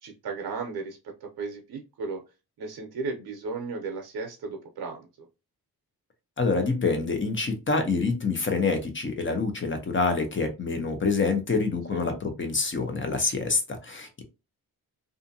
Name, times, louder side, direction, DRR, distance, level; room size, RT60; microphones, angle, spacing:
voice 1, 0.0-2.2 2.6-5.3 11.9-12.1, right 4 dB, 85° right, 2 dB, 0.6 m, -35 dB
voice 2, 6.4-14.2, left 4 dB, 30° left, 6 dB, 0.7 m, -26 dB
2.5 x 2.5 x 2.6 m, 0.27 s
wide cardioid pair, 105°, 37 cm